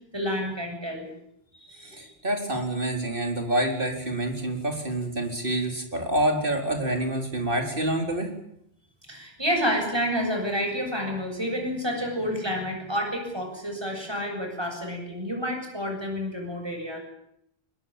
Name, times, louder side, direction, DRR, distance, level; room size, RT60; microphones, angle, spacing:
voice 1, 0.1-1.1 1.5-2.1 9.1-17.0, equal, 25° right, 2 dB, 7.7 m, -29 dB
voice 2, 1.9-8.3, right 1 dB, 55° right, 3 dB, 4.5 m, -27 dB
22.0 x 20.0 x 9.0 m, 0.74 s
omnidirectional pair, 1.1 m